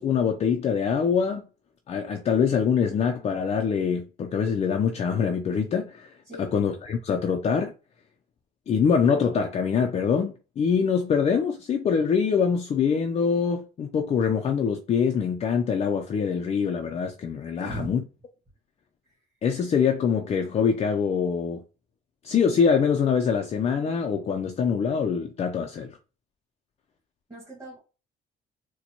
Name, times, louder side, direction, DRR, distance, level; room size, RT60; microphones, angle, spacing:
voice 1, 0.0-1.4 1.9-6.1 6.4-7.7 8.7-18.0 19.4-21.6 22.2-26.0, left 6 dB, 40° left, 0.5 m, -24 dB
voice 2, 17.6-18.1 27.3-27.8, right 2 dB, 15° right, 1.7 m, -38 dB
4.1 x 2.2 x 2.9 m
cardioid pair, 110°, 17 cm